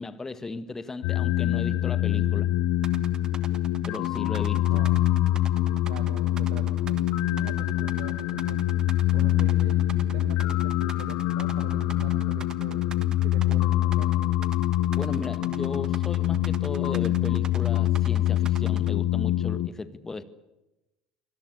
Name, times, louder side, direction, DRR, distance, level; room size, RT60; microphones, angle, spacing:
voice 1, 0.0-2.5 3.9-4.8 15.0-20.2, left 3 dB, 20° left, 1.7 m, -36 dB
sound 1, 1.0-19.7, left 13 dB, 55° left, 0.9 m, -25 dB
sound 2, 2.8-18.9, right 6 dB, 30° right, 1.4 m, -44 dB
voice 2, 5.9-8.7 9.1-12.9 13.2-14.1, right 9 dB, 65° right, 2.0 m, -43 dB
25.5 x 18.5 x 8.5 m
figure-of-eight pair, 70°, 2 cm